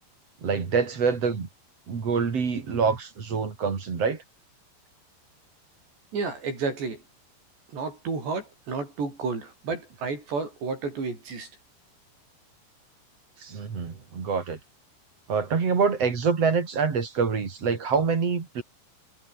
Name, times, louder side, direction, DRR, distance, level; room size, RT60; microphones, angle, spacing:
voice 1, 0.4-1.5 1.9-4.2 13.4-14.6 15.3-18.6, right 5 dB, 35° right, 3.8 m, -26 dB
voice 2, 6.1-7.0 7.7-11.5, right 4 dB, 70° right, 10.5 m, -31 dB
omnidirectional pair, 5.1 m